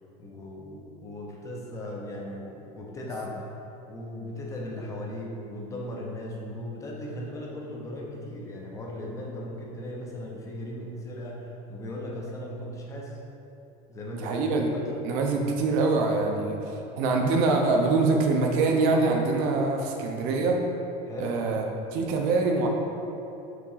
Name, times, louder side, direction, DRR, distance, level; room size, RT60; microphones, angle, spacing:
voice 1, 0.2-3.4 3.9-13.2 13.9-14.9 21.1-21.4, left 1 dB, 15° left, -2 dB, 0.7 m, -37 dB
voice 2, 14.1-14.7 15.0-20.6 21.2-21.6 21.9-22.7, right 3 dB, 55° right, 2 dB, 0.8 m, -24 dB
4.9 x 3.8 x 5.6 m, 3.0 s
cardioid pair, 170°, 18 cm